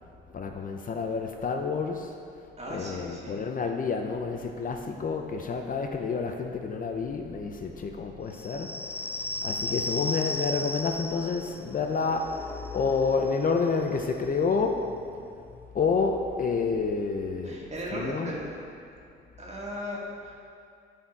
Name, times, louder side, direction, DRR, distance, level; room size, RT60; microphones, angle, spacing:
voice 1, 0.3-2.2 2.7-15.0 15.7-17.6 17.9-18.4, left 4 dB, 45° left, 4 dB, 0.7 m, -29 dB
voice 2, 2.6-3.4 17.4-18.6 19.4-20.4, equal, 35° right, -4 dB, 2.1 m, -37 dB
sound 1, 8.3-15.6, left 2 dB, 10° left, 0.3 m, -36 dB
11.0 x 4.3 x 4.6 m, 2.4 s
cardioid pair, 90°, 20 cm